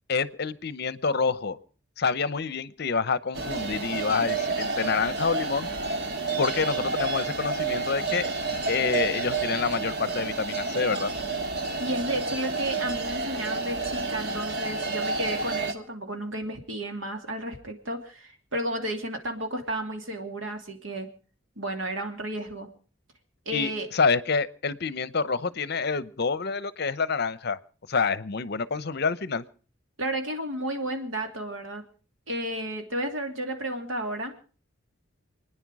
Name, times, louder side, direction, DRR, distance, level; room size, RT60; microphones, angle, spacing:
voice 1, 0.1-1.6 2.0-5.7 6.4-8.3 8.7-11.1 23.5-27.6 27.9-29.4, left 5 dB, 55° left, 16 dB, 0.7 m, -27 dB
sound 1, 3.3-15.7, right 3 dB, 55° right, 1.6 m, -30 dB
voice 2, 11.8-21.1 21.6-22.7 23.5-23.9 30.0-31.8 32.3-34.3, right 1 dB, 85° right, 4 dB, 2.8 m, -32 dB
28.0 x 10.0 x 4.8 m, 0.40 s
head